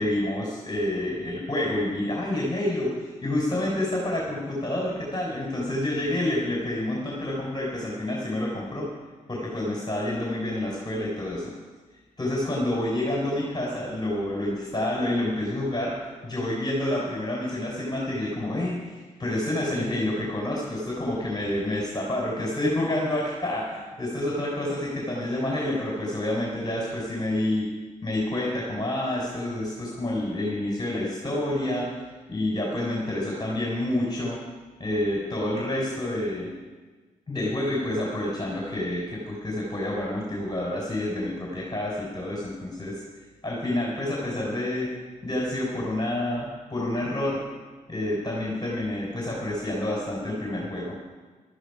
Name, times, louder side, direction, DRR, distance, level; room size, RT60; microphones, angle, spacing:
voice 1, 0.0-8.9 9.3-11.4 12.2-27.7 28.0-34.4 34.8-36.5 37.3-42.9 43.4-44.9 45.2-47.4 47.9-50.9, left 1 dB, 25° left, -3 dB, 4.5 m, -28 dB
15.0 x 13.5 x 5.0 m, 1.3 s
supercardioid pair, 50°, 15 cm